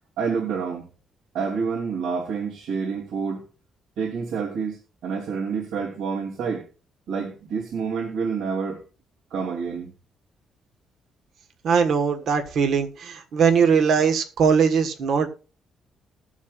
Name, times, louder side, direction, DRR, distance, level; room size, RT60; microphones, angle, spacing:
voice 1, 0.2-0.9 1.3-3.4 4.0-6.6 7.1-8.8 9.3-9.9, right 5 dB, 85° right, 2.8 m, -28 dB
voice 2, 11.6-15.3, right 6 dB, 55° right, 1.4 m, -20 dB
20.0 x 7.4 x 2.5 m
cardioid pair, 165°, 0 cm